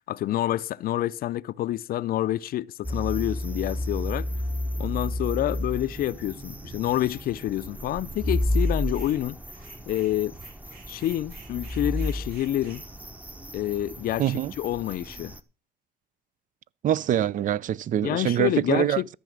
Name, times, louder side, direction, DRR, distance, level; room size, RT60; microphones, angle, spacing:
voice 1, 0.1-4.3 4.8-9.4 9.9-10.3 10.9-12.8 13.5-15.3 18.0-19.1, left 13 dB, 60° left, 0.5 m, -28 dB
sound 1, 2.8-15.4, left 1 dB, 10° right, 0.9 m, -32 dB
sound 2, 8.5-9.2 9.5-12.8, right 5 dB, 65° right, 6.9 m, -52 dB
voice 2, 14.2-14.5 16.8-19.0, right 11 dB, 50° right, 0.5 m, -24 dB
14.0 x 6.9 x 6.3 m
cardioid pair, 110°, 17 cm